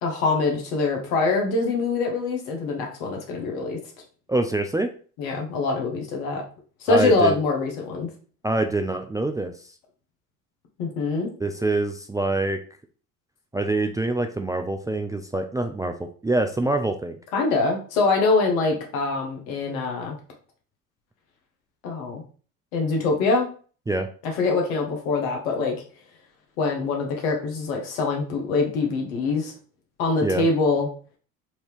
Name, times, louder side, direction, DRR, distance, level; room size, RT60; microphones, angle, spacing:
voice 1, 0.0-3.8 5.2-6.4 6.8-8.1 10.8-11.3 17.3-20.2 21.8-22.2 22.7-23.5 24.2-25.7 26.6-29.5 30.0-30.9, left 3 dB, 75° left, 2 dB, 1.4 m, -24 dB
voice 2, 4.3-4.9 6.9-7.4 8.4-9.5 11.4-12.6 13.5-15.9 16.2-17.2 23.9-24.1 30.2-30.4, right 2 dB, 10° right, 5 dB, 0.3 m, -25 dB
4.5 x 2.8 x 3.4 m, 0.40 s
hypercardioid pair, 65°, 41 cm